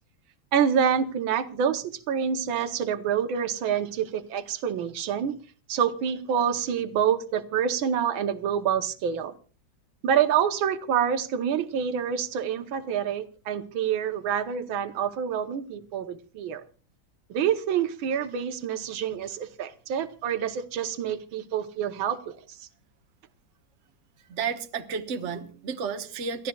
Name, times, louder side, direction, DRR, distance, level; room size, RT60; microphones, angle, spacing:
voice 1, 0.5-5.4 5.7-9.4 10.0-16.6 17.3-22.3, right 8 dB, 85° right, 1.8 m, -27 dB
voice 2, 24.3-26.5, right 6 dB, 40° right, 1.3 m, -32 dB
29.0 x 13.5 x 2.3 m
omnidirectional pair, 2.1 m